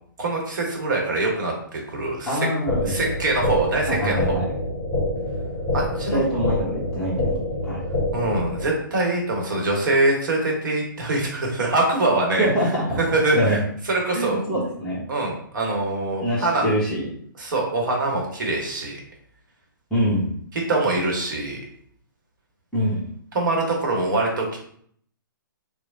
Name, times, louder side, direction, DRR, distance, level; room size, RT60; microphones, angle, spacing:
voice 1, 0.2-2.4 2.8-4.4 5.7-6.2 8.1-12.5 13.1-13.6 13.9-14.4 15.1-16.6 17.4-19.0 20.7-21.6 23.3-24.6, right 2 dB, 60° right, 0 dB, 0.9 m, -24 dB
voice 2, 2.3-3.0 3.9-4.4 6.1-7.4 7.6-7.8 12.4-13.0 13.3-13.6 14.1-15.0 16.2-17.1 19.9-20.3 22.7-23.0, equal, 5° left, -8 dB, 0.8 m, -24 dB
sound 1, 2.7-8.7, left 1 dB, 50° left, 0.8 m, -26 dB
3.0 x 2.0 x 2.5 m, 0.62 s
figure-of-eight pair, 125°, 12 cm